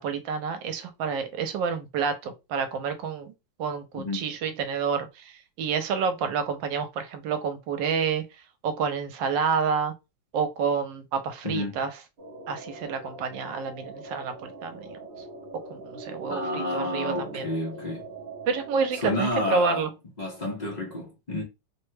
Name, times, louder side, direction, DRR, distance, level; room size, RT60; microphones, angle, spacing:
voice 1, 0.0-3.3 3.6-8.2 8.6-9.9 10.3-11.9 12.5-15.0 15.7-17.5 18.5-19.9, right 6 dB, 85° right, 1.3 m, -29 dB
sound 1, 12.2-19.3, right 2 dB, 50° right, 0.7 m, -42 dB
voice 2, 16.3-18.1 18.9-19.9 20.2-21.4, left 1 dB, 60° left, 0.4 m, -30 dB
3.2 x 2.1 x 3.1 m
omnidirectional pair, 2.0 m